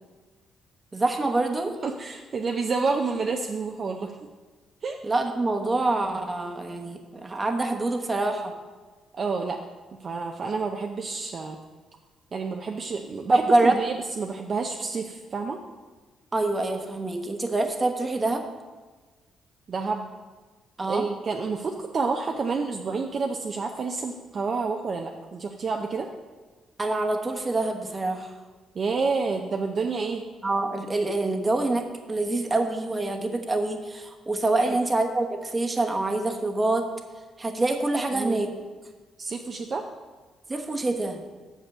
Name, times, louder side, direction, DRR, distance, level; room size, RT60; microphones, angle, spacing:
voice 1, 0.9-1.7 5.0-8.5 13.3-13.8 16.3-18.4 20.8-21.1 26.8-28.4 30.4-36.9 37.4-38.5 40.5-41.2, right 2 dB, 25° right, 4 dB, 1.1 m, -25 dB
voice 2, 1.8-4.1 4.8-5.0 9.1-9.6 10.0-11.6 12.3-15.6 19.7-20.1 20.9-26.1 28.7-30.2 34.6-34.8 38.1-38.4 39.2-39.8, right 4 dB, 45° right, 2 dB, 0.6 m, -29 dB
6.6 x 5.4 x 7.2 m, 1.3 s
cardioid pair, 90°, 0 cm